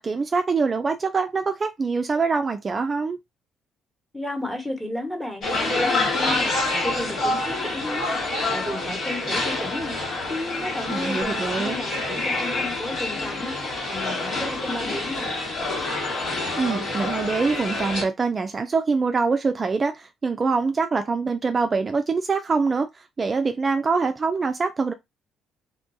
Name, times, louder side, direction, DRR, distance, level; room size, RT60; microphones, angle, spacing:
voice 1, 0.0-3.2 10.9-11.8 16.6-22.9 23.2-24.9, right 4 dB, 35° right, 0.3 m, -24 dB
voice 2, 4.1-10.0 10.3-15.3, left 1 dB, 10° left, 1.1 m, -33 dB
sound 1, 5.4-18.0, left 2 dB, 65° left, 1.4 m, -27 dB
2.3 x 2.2 x 2.5 m
hypercardioid pair, 55°, 0 cm